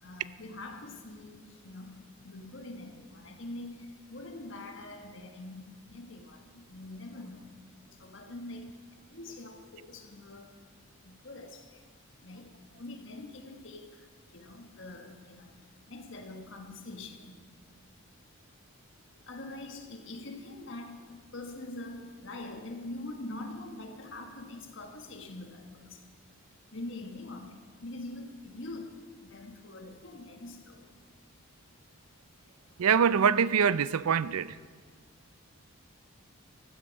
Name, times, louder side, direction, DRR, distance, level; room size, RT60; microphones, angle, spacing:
voice 1, 0.0-7.6 8.0-10.5 11.0-11.8 12.2-17.6 19.3-26.1 26.7-30.9, left 2 dB, 60° left, 1.6 m, -44 dB
voice 2, 32.8-34.6, right 7 dB, 85° right, 0.4 m, -24 dB
15.5 x 12.0 x 5.3 m
head